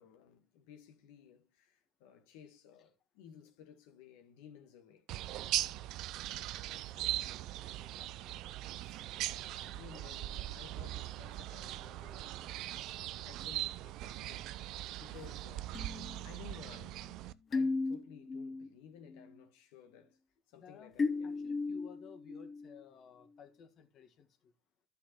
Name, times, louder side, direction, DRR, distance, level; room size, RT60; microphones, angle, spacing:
voice 1, 0.0-5.1 9.2-15.8 16.2-20.2 20.5-21.4, left 8 dB, 75° left, 1.4 m, -57 dB
sound 1, 5.1-17.3, right 14 dB, 65° right, 0.4 m, -40 dB
voice 2, 6.7-7.3 7.6-8.4 8.8-9.0 15.1-15.3 20.5-20.9 21.2-24.5, left 6 dB, 50° left, 1.5 m, -57 dB
sound 2, 15.7-18.7 19.1-19.5 21.0-22.9, left 3 dB, 30° left, 0.5 m, -37 dB
13.0 x 5.6 x 3.0 m
hypercardioid pair, 70°, 0 cm